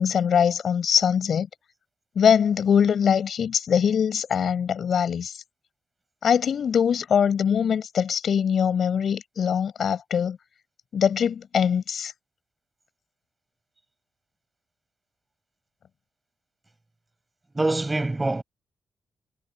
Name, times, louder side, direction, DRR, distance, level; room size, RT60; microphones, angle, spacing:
voice 1, 0.0-1.5 2.2-5.4 6.2-10.4 10.9-12.1, left 7 dB, 70° left, 6.0 m, -22 dB
voice 2, 17.5-18.4, right 2 dB, 20° right, 6.0 m, -24 dB
cardioid pair, 80°, 0 cm